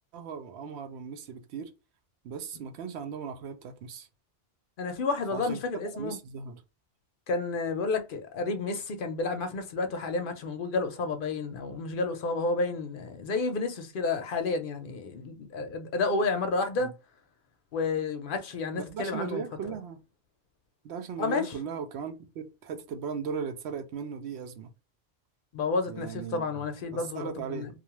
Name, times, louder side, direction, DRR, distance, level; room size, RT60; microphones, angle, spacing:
voice 1, 0.1-1.7 2.2-4.1 5.3-5.6 5.9-6.6 16.8-16.9 18.9-20.0 20.8-24.7 25.9-27.7, right 6 dB, 70° right, 0.8 m, -37 dB
voice 2, 4.8-6.2 7.3-16.9 17.7-19.4 21.2-21.5 25.5-27.7, left 3 dB, 55° left, 0.6 m, -30 dB
2.4 x 2.3 x 2.9 m
omnidirectional pair, 1.2 m